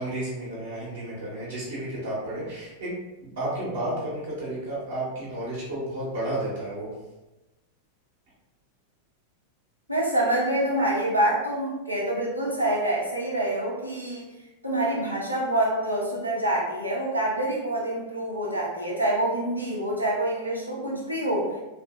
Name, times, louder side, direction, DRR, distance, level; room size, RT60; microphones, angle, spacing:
voice 1, 0.0-2.9 3.2-6.9, right 1 dB, 60° right, -8 dB, 0.9 m, -32 dB
voice 2, 9.9-14.3 14.6-21.5, right 1 dB, 90° right, -5 dB, 0.7 m, -26 dB
2.7 x 2.5 x 2.3 m, 1.0 s
figure-of-eight pair, 90°, 0 cm